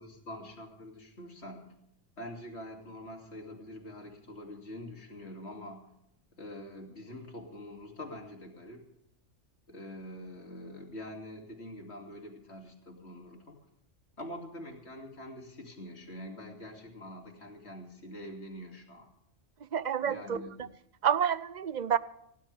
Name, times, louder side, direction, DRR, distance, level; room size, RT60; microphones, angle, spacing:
voice 1, 0.0-1.7 2.2-5.9 6.4-8.9 9.7-13.6 14.2-19.1 20.0-20.6, left 1 dB, 55° left, 2 dB, 3.0 m, -45 dB
voice 2, 19.7-20.4 21.0-22.0, right 8 dB, 45° right, 16 dB, 0.6 m, -28 dB
19.0 x 17.5 x 3.5 m, 0.78 s
omnidirectional pair, 1.3 m